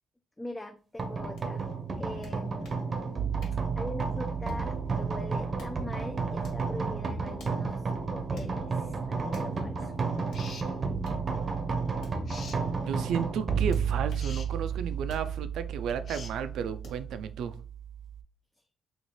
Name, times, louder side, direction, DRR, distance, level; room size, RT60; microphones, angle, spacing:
voice 1, 0.4-1.6 1.9-2.7 3.8-9.9, left 1 dB, 15° left, 0.3 m, -41 dB
sound 1, 1.0-18.2, right 5 dB, 40° right, 0.6 m, -32 dB
sound 2, 1.4-1.5 2.2-2.8 3.4-3.7 4.5-4.8 5.3-5.8 6.4-6.7 7.4-7.6 8.4-8.5 9.3-9.6 10.3-10.5 11.0-11.2 12.0-12.6 13.7-14.3 15.1-15.3 15.9-16.0 16.8-17.0, left 1 dB, 75° left, 1.5 m, -49 dB
sound 3, 10.3-10.7 12.3-12.6 14.2-14.5 16.1-16.4, left 4 dB, 55° left, 0.6 m, -44 dB
voice 2, 12.9-17.5, right 7 dB, 75° right, 0.4 m, -33 dB
3.1 x 2.5 x 4.0 m
cardioid pair, 90°, 0 cm